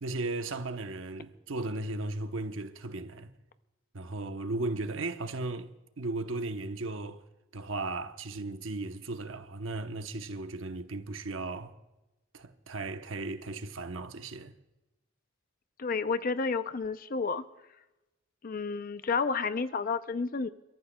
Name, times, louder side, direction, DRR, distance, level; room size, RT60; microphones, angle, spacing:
voice 1, 0.0-3.3 3.9-7.2 7.5-11.8 12.3-14.5, right 2 dB, 80° right, 0.9 m, -36 dB
voice 2, 15.8-17.4 18.4-20.5, left 4 dB, 45° left, 0.6 m, -31 dB
29.5 x 14.0 x 2.3 m
head